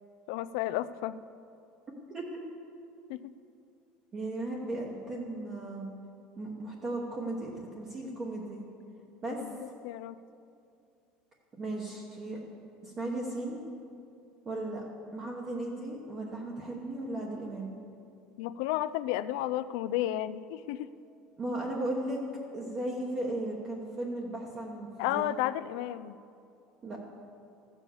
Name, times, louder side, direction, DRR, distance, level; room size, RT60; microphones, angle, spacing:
voice 1, 0.3-1.2 3.1-3.3 9.4-10.2 18.4-20.9 25.0-26.2, left 13 dB, 75° left, 15 dB, 0.4 m, -32 dB
voice 2, 2.1-2.4 4.1-5.9 6.4-8.6 9.2-9.4 11.6-12.4 12.8-13.6 14.4-14.8 15.1-17.7 21.4-22.2 22.5-25.2 26.8-27.1, right 2 dB, 25° right, -2 dB, 1.1 m, -36 dB
14.5 x 7.2 x 7.1 m, 2.5 s
cardioid pair, 170°, 3 cm